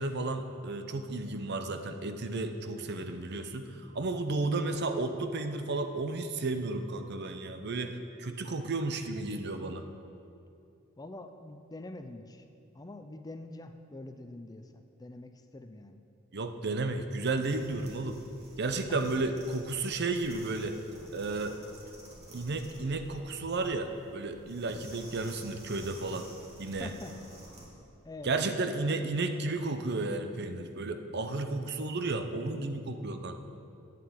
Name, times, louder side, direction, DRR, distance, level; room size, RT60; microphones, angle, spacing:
voice 1, 0.0-9.9 16.3-18.2 18.6-20.8 21.1-21.6 22.3-26.2 26.6-26.9 28.2-33.4, right 3 dB, 55° right, 7 dB, 0.7 m, -33 dB
voice 2, 11.0-12.5 12.7-16.0 18.9-19.0 26.8-27.1 28.0-28.4, left 2 dB, 20° left, 7 dB, 0.5 m, -45 dB
sound 1, 17.4-27.7, right 1 dB, 30° right, 2.1 m, -51 dB
8.4 x 7.8 x 8.7 m, 2.6 s
head